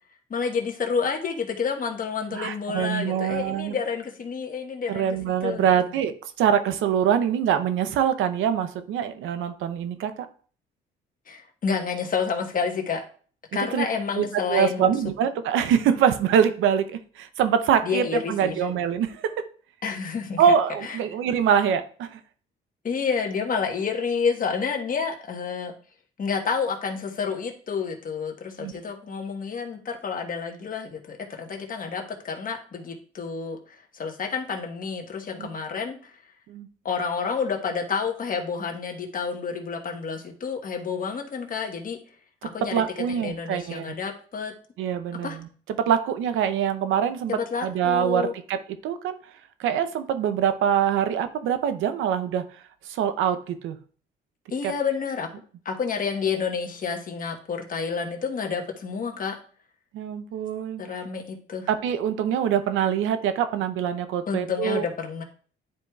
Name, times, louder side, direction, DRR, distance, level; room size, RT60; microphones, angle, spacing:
voice 1, 0.3-5.9 11.3-13.0 13.5-14.9 17.8-18.6 19.8-20.4 20.8-21.0 22.8-25.7 26.2-36.2 36.8-42.0 42.4-44.5 45.2-45.4 47.3-48.3 54.5-55.3 55.6-59.4 60.8-61.7 64.3-65.2, left 5 dB, 45° left, 3 dB, 1.2 m, -29 dB
voice 2, 2.3-3.8 4.9-10.3 13.7-13.9 14.2-16.8 17.2-19.3 20.4-22.2 28.6-28.7 35.4-35.5 36.5-36.7 42.7-43.9 44.8-45.5 45.8-49.2 49.6-52.4 52.9-53.8 54.6-54.7 59.9-60.8 61.7-64.8, right 8 dB, 85° right, 11 dB, 0.6 m, -24 dB
10.5 x 4.6 x 2.3 m, 0.43 s
cardioid pair, 90°, 20 cm